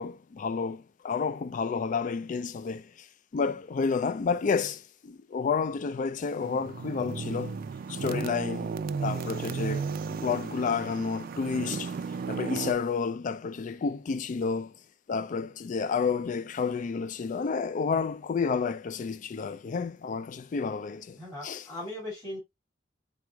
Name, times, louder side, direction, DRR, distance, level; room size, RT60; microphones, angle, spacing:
voice 1, 0.0-3.1 3.3-7.6 7.9-8.7 9.0-11.9 12.3-14.8 15.1-21.7, left 5 dB, 45° left, 0.3 m, -30 dB
sound 1, 6.4-12.7, right 5 dB, 50° right, 0.3 m, -34 dB
voice 2, 21.2-22.4, left 1 dB, 20° left, 2.3 m, -38 dB
4.7 x 3.7 x 2.3 m
head